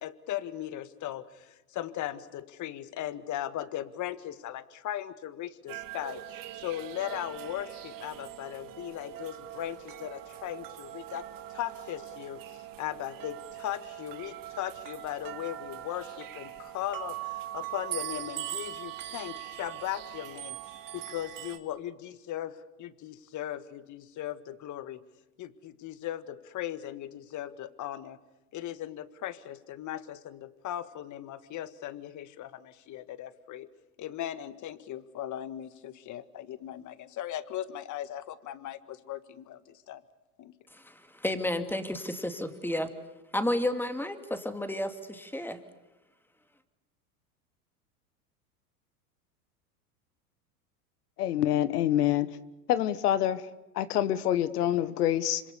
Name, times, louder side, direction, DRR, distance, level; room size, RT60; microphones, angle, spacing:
voice 1, 0.0-25.0 25.4-28.2 28.5-33.7 34.0-40.0 40.4-40.5, left 12 dB, 40° left, 13 dB, 1.7 m, -38 dB
sound 1, 5.7-21.6, right 13 dB, 45° right, 2.3 m, -41 dB
voice 2, 40.7-42.9 43.3-45.6, left 1 dB, 5° left, 7 dB, 2.4 m, -32 dB
voice 3, 51.2-52.3 52.7-53.4 53.7-55.4, left 12 dB, 75° left, 14 dB, 1.4 m, -26 dB
26.5 x 25.5 x 6.9 m, 1.0 s
hypercardioid pair, 90°, 46 cm